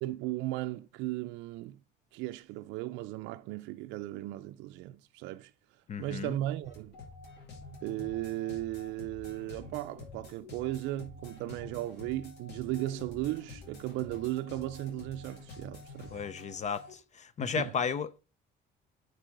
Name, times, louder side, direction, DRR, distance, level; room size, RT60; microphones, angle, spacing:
voice 1, 0.0-1.8 2.1-5.5 6.0-6.9 7.8-16.2 17.4-17.7, right 16 dB, 90° right, 0.4 m, -36 dB
voice 2, 5.9-6.3 16.1-18.2, left 6 dB, 40° left, 0.5 m, -34 dB
sound 1, 6.6-16.9, left 3 dB, 65° left, 2.5 m, -49 dB
9.8 x 4.7 x 3.8 m
cardioid pair, 105°, 19 cm